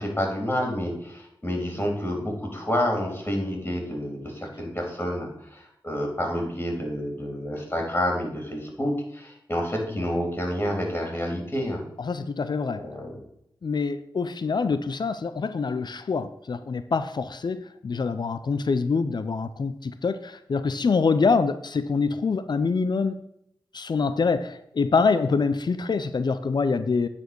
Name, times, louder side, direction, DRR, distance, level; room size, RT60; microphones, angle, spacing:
voice 1, 0.0-11.8 12.7-13.2, equal, 25° left, 1 dB, 3.7 m, -29 dB
voice 2, 12.0-12.8 13.6-23.2 23.7-27.1, left 4 dB, 60° left, 11 dB, 0.5 m, -25 dB
9.6 x 4.3 x 6.3 m, 0.77 s
cardioid pair, 45°, 8 cm